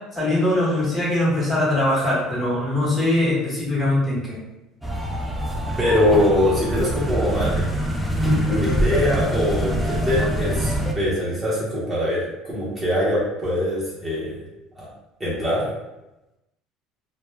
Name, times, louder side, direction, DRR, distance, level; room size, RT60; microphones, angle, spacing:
voice 1, 0.1-4.4, left 1 dB, 20° left, -6 dB, 1.0 m, -21 dB
sound 1, 4.8-10.9, equal, ahead, 0.3 m, -24 dB
voice 2, 5.8-7.7 8.4-14.3 14.7-14.9 15.2-15.7, left 1 dB, 20° right, -8 dB, 0.7 m, -23 dB
2.2 x 2.1 x 3.2 m, 0.96 s
cardioid pair, 135°, 0 cm